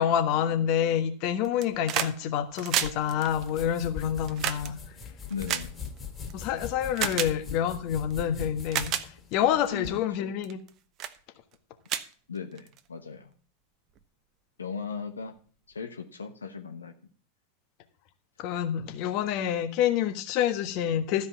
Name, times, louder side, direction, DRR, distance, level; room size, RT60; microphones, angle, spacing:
voice 1, 0.0-4.8 6.3-8.9 9.3-10.6 18.4-21.3, left 9 dB, 50° left, 8 dB, 1.3 m, -27 dB
sound 1, 1.4-2.2 2.4-6.3 7.0-7.3 8.1-8.2 8.6-9.1 9.7-9.9 10.4-10.7 11.0-11.2 11.5-11.6 11.9-12.8 14.0-14.1, right 10 dB, 45° right, 0.9 m, -31 dB
sound 2, 2.8-10.0, left 6 dB, 25° left, 2.8 m, -42 dB
voice 2, 5.3-5.7 7.0-7.1 9.4-9.9 10.2-10.3 12.3-13.3 14.6-15.3 15.7-16.9, left 5 dB, 90° left, 6 dB, 1.0 m, -38 dB
13.0 x 5.2 x 7.2 m, 0.43 s
hypercardioid pair, 95°, 0 cm